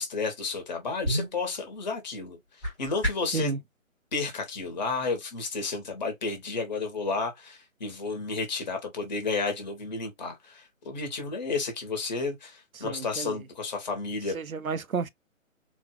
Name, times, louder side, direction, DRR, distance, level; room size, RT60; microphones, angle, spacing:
voice 1, 0.0-3.5 4.1-14.4, left 4 dB, 30° left, 1.3 m, -32 dB
sound 1, 0.6-3.4, equal, 5° left, 0.8 m, -34 dB
voice 2, 12.7-13.5 14.3-15.1, right 5 dB, 85° right, 0.7 m, -31 dB
4.0 x 2.3 x 3.0 m
figure-of-eight pair, 145°, 41 cm